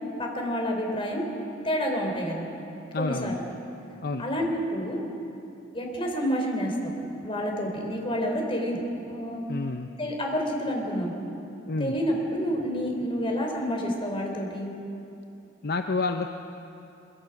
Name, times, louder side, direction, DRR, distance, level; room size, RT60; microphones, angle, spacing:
voice 1, 0.2-1.3 1.6-2.5 3.0-3.3 4.2-5.0 5.7-6.9 7.2-8.8 9.1-9.4 10.0-11.1 11.8-14.7, equal, 30° left, 1 dB, 3.6 m, -29 dB
voice 2, 2.9-3.4 4.0-4.3 9.5-9.9 11.7-12.0 15.6-16.3, left 3 dB, 55° left, 6 dB, 0.7 m, -29 dB
23.0 x 22.5 x 5.9 m, 2.8 s
head